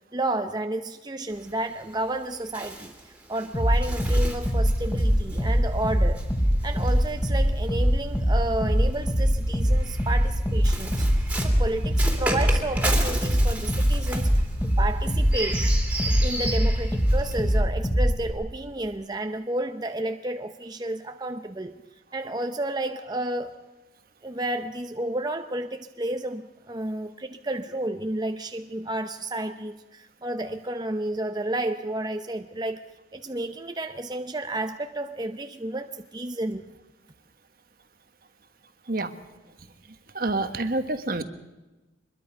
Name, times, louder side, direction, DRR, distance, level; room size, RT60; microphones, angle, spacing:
voice 1, 0.1-2.9 3.3-6.3 6.6-11.1 11.4-15.7 16.0-21.8 22.1-23.6 24.2-32.8 33.1-36.6, right 1 dB, 25° right, 0.8 m, -31 dB
Bird, 1.3-7.8 8.8-17.6, right 1 dB, 10° right, 2.9 m, -35 dB
sound 1, 3.5-18.3, equal, 20° left, 3.8 m, -23 dB
voice 2, 40.1-41.2, right 2 dB, 55° right, 1.4 m, -27 dB
24.5 x 21.5 x 5.4 m
head